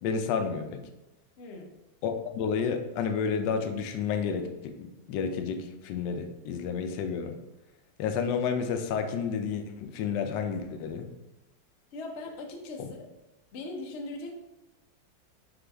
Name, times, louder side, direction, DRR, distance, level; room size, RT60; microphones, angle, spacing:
voice 1, 0.0-0.8 2.0-7.4 8.0-11.1 12.8-12.9, left 6 dB, 75° left, 6 dB, 1.2 m, -31 dB
voice 2, 1.4-1.7 11.9-13.1 13.5-14.3, left 2 dB, 60° left, 2 dB, 0.7 m, -39 dB
4.2 x 3.8 x 3.4 m, 1.0 s
omnidirectional pair, 2.0 m